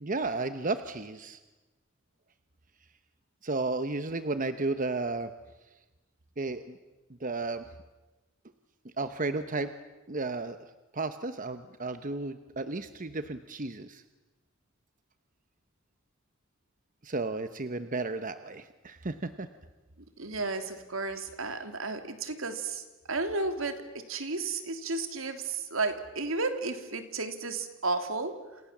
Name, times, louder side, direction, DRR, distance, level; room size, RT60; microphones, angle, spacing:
voice 1, 0.0-1.4 3.4-5.3 6.4-6.8 7.2-7.6 9.0-9.7 10.1-10.7 10.9-14.0 17.0-19.5, right 3 dB, 40° right, 10 dB, 1.0 m, -33 dB
voice 2, 20.2-28.6, right 3 dB, 75° right, 7 dB, 3.0 m, -33 dB
29.0 x 28.0 x 7.4 m, 1.2 s
head